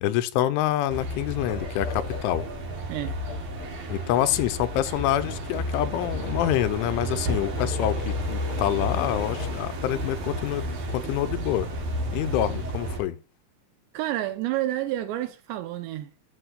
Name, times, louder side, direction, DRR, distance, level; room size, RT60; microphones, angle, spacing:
voice 1, 0.0-2.4 3.9-11.7 12.1-13.2, left 12 dB, 85° left, 3.1 m, -26 dB
sound 1, 0.9-13.0, equal, 50° right, 3.0 m, -31 dB
sound 2, 1.5-9.6, left 6 dB, 70° left, 2.4 m, -41 dB
voice 2, 13.9-16.2, right 14 dB, 85° right, 2.6 m, -29 dB
12.5 x 7.9 x 2.3 m
omnidirectional pair, 5.6 m